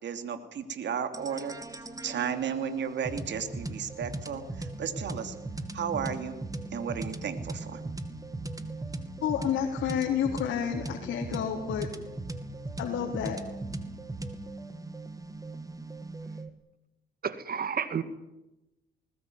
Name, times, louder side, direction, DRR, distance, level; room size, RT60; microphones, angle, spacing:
voice 1, 0.0-1.6 2.0-5.3 5.7-6.4 6.7-7.8, right 7 dB, 65° right, 8 dB, 2.8 m, -34 dB
sound 1, 1.1-16.5, right 2 dB, 15° right, 2.6 m, -39 dB
voice 2, 9.2-11.9 12.8-13.4, left 9 dB, 80° left, -1 dB, 3.4 m, -30 dB
voice 3, 17.2-18.0, right 7 dB, 50° right, 12 dB, 1.9 m, -31 dB
20.5 x 20.0 x 9.4 m, 0.93 s
cardioid pair, 90°, 20 cm